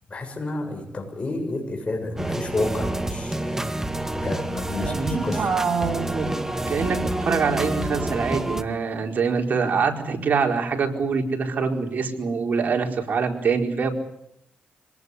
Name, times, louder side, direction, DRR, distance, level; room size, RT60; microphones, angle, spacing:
voice 1, 0.1-3.6 4.1-5.7, left 2 dB, 35° left, 3 dB, 7.3 m, -30 dB
sound 1, 2.2-8.6, right 1 dB, 10° right, 1.9 m, -28 dB
voice 2, 4.8-13.9, right 5 dB, 55° right, 3 dB, 4.7 m, -25 dB
26.0 x 19.0 x 9.7 m, 0.74 s
cardioid pair, 85°, 4 cm